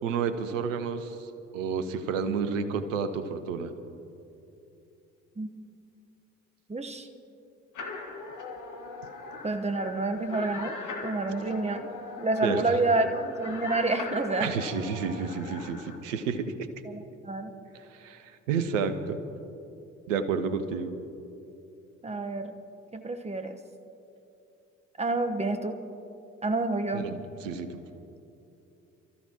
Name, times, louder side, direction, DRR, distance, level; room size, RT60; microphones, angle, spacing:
voice 1, 0.0-3.7 12.4-12.8 14.4-16.5 17.7-19.2 20.1-20.9 26.9-27.8, right 6 dB, 80° right, 10 dB, 0.9 m, -31 dB
voice 2, 6.7-7.1 9.4-10.7 11.0-11.9 12.2-14.5 16.8-17.5 22.0-22.5 22.9-23.5 25.0-25.8 26.4-27.1, right 2 dB, 15° right, 7 dB, 1.2 m, -28 dB
sound 1, 7.7-16.0, left 4 dB, 50° left, 2.0 m, -40 dB
28.0 x 14.0 x 3.0 m, 2.8 s
figure-of-eight pair, 50°, 38 cm